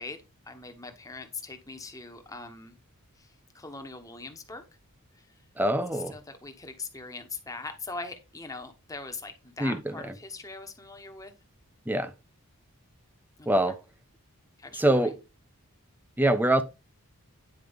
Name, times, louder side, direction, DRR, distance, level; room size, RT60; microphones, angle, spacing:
voice 1, 0.0-2.8 3.2-4.6 5.1-5.3 6.1-11.3 13.4-13.5 14.6-15.0, left 3 dB, 15° left, 1.0 m, -41 dB
voice 2, 5.6-6.2 9.6-10.1 11.9-12.1 13.5-13.8 14.7-15.2 16.2-16.6, right 1 dB, 10° right, 0.6 m, -24 dB
9.5 x 4.6 x 3.6 m
head